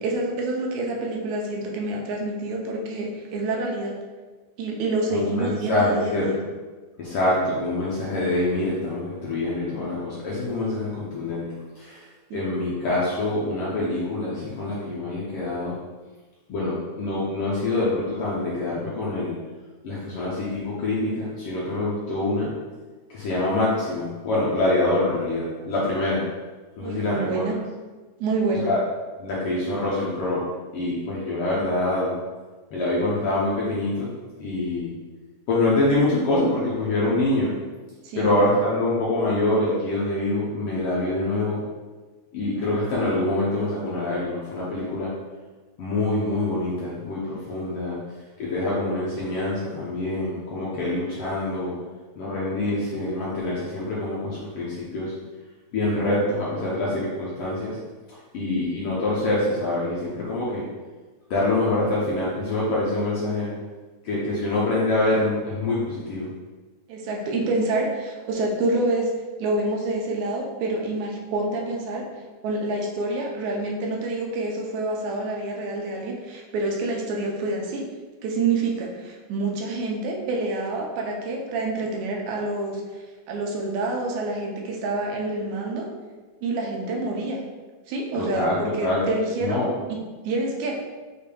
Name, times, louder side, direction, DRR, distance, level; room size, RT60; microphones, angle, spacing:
voice 1, 0.0-3.9 4.6-6.4 12.3-12.5 26.8-27.6 28.2-28.7 38.0-38.3 66.9-69.1 69.4-72.1 72.4-77.9 78.2-82.8 83.3-85.9 86.4-87.4 87.9-89.6 89.9-90.0 90.3-90.8, right 2 dB, 80° right, -1 dB, 2.0 m, -27 dB
voice 2, 5.1-6.3 7.0-11.5 11.8-12.1 12.3-15.7 16.5-19.4 19.8-22.5 23.1-26.2 26.8-27.5 28.6-28.8 29.2-30.4 30.7-32.1 32.7-34.1 34.4-34.9 35.5-37.5 38.2-41.6 42.3-45.1 45.8-48.0 48.4-51.7 52.2-55.1 55.7-57.8 58.3-60.6 61.3-63.5 64.0-66.3 88.1-89.0 89.4-89.7, left 2 dB, 70° left, -7 dB, 1.4 m, -25 dB
6.5 x 3.4 x 2.3 m, 1.3 s
omnidirectional pair, 3.3 m